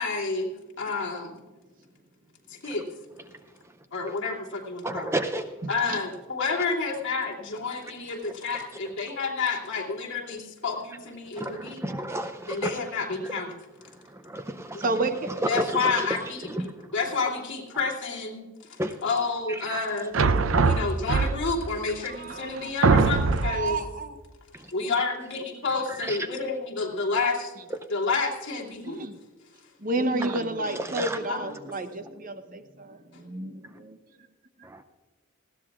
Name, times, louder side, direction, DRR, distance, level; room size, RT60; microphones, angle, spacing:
voice 1, 0.0-1.4 2.5-2.9 3.9-5.2 5.7-11.8 12.5-13.6 15.5-20.2 20.6-23.8 24.7-27.5 27.9-29.0 31.3-31.4, left 4 dB, 60° left, -2 dB, 2.9 m, -30 dB
voice 2, 4.8-5.4 11.4-12.8 14.1-14.9 15.5-16.1 16.5-16.7 18.8-19.0 19.5-19.8 24.5-24.6 26.0-26.2 30.3-30.4 30.8-31.2, right 1 dB, 10° right, 8 dB, 0.5 m, -31 dB
voice 3, 5.6-6.0 14.8-15.4 22.1-22.9 23.4-24.2 28.8-29.2 29.8-34.0, right 2 dB, 40° right, 8 dB, 0.8 m, -31 dB
sound 1, 20.1-21.7 22.3-22.4 22.8-23.7, right 4 dB, 65° right, 0.6 m, -21 dB
19.5 x 16.0 x 2.4 m, 1.4 s
head